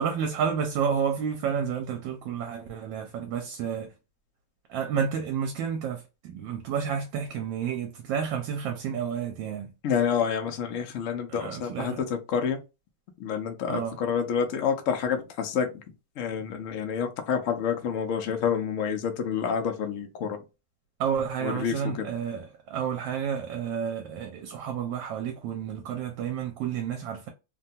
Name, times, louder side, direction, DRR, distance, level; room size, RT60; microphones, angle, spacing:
voice 1, 0.0-3.9 4.7-9.7 11.3-12.0 13.7-14.0 21.0-27.3, right 7 dB, 75° right, 1.3 m, -30 dB
voice 2, 9.8-12.6 13.2-15.7 16.2-20.4 21.4-22.1, left 7 dB, 90° left, 0.6 m, -28 dB
3.2 x 2.2 x 2.7 m
omnidirectional pair, 2.2 m